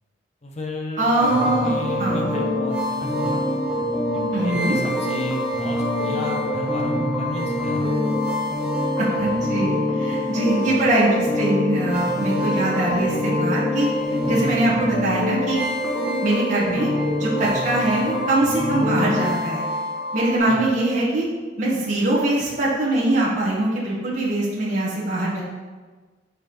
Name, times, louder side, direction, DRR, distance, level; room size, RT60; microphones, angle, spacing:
voice 1, 0.4-1.0 1.4-3.4 4.4-7.9 10.5-10.8 14.7-14.9 20.4-20.6, left 1 dB, 40° left, 0 dB, 1.0 m, -33 dB
voice 2, 1.0-1.7 2.0-2.3 4.3-4.8 9.0-15.6 16.2-16.9 17.2-19.6 20.1-21.3 21.6-25.4, right 1 dB, 45° right, -7 dB, 1.5 m, -22 dB
sound 1, 1.2-20.4, left 1 dB, 5° right, 1.1 m, -24 dB
5.5 x 4.7 x 4.5 m, 1.4 s
head